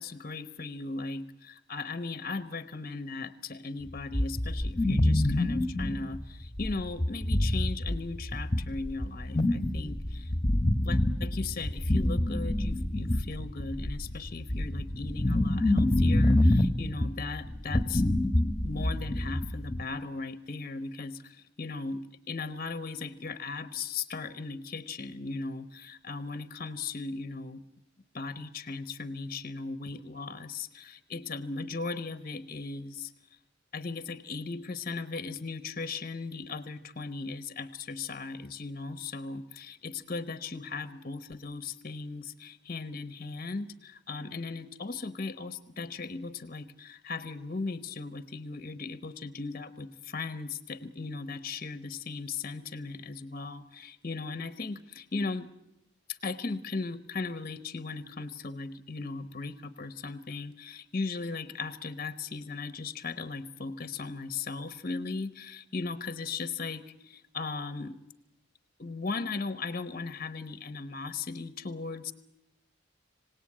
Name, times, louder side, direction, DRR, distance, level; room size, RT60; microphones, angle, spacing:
voice 1, 0.0-10.3 10.8-18.0 18.3-27.6 28.1-33.4 33.7-55.5 56.1-68.0 68.8-72.1, left 4 dB, 45° left, 11 dB, 0.9 m, -37 dB
sound 1, 4.1-19.8, left 1 dB, 20° left, 1.1 m, -27 dB
26.5 x 18.0 x 8.8 m, 0.87 s
head